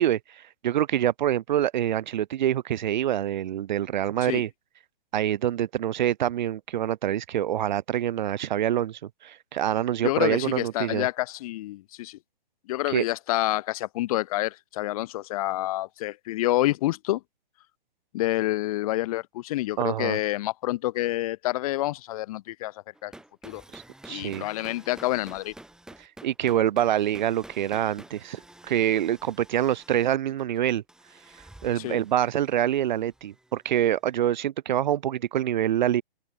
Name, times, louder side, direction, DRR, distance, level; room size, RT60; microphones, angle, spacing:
voice 1, 0.0-4.5 5.1-11.1 12.9-13.1 19.8-20.2 23.7-24.4 26.0-30.8 31.6-36.0, right 11 dB, 50° right, 0.6 m, -26 dB
voice 2, 10.0-12.2 12.7-17.2 18.1-22.7 23.0-23.1 23.4-23.6 24.1-25.5 31.8-32.0, left 17 dB, 40° left, 1.3 m, -28 dB
sound 1, 22.9-33.8, right 1 dB, ahead, 2.8 m, -50 dB
open air
hypercardioid pair, 135°, 30 cm